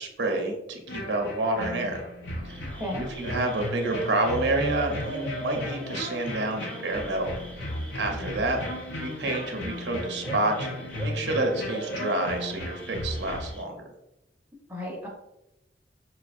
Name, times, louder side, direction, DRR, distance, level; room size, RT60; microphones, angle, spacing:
voice 1, 0.0-2.0 2.4-2.6 2.9-7.3 7.9-8.6 9.0-13.9, right 2 dB, 70° right, 3 dB, 0.6 m, -29 dB
sound 1, 0.9-13.5, left 1 dB, 75° left, 0.6 m, -36 dB
sound 2, 2.5-13.6, right 2 dB, 10° left, 0.4 m, -40 dB
voice 2, 8.1-8.4 14.7-15.1, left 1 dB, 10° right, -3 dB, 0.8 m, -34 dB
5.5 x 2.0 x 2.5 m, 0.89 s
head